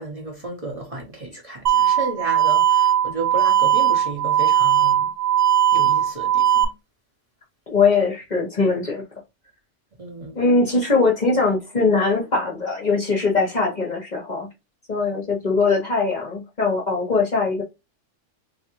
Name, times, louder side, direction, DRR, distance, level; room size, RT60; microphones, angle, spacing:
voice 1, 0.0-5.1 5.7-6.7 10.0-10.4, right 3 dB, 35° right, 0.8 m, -33 dB
sound 1, 1.7-6.7, right 10 dB, 75° right, 0.3 m, -18 dB
voice 2, 7.7-9.0 10.3-14.5 14.9-17.6, left 4 dB, 40° left, 0.8 m, -21 dB
3.5 x 2.5 x 2.9 m
omnidirectional pair, 1.3 m